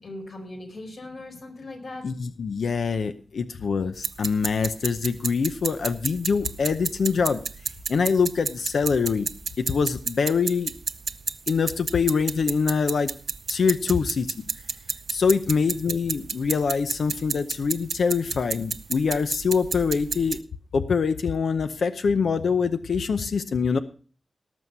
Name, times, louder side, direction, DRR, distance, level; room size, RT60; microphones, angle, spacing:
voice 1, 0.0-2.1, left 2 dB, 70° left, 2 dB, 4.4 m, -39 dB
voice 2, 2.0-7.4 7.9-9.3 9.6-10.7 11.5-13.1 13.5-14.3 15.1-20.4 20.7-23.8, left 5 dB, 90° left, 10 dB, 0.7 m, -24 dB
sound 1, 3.9-20.4, right 5 dB, 65° right, 0.6 m, -32 dB
18.5 x 6.4 x 5.4 m, 0.40 s
wide cardioid pair, 130°, 0 cm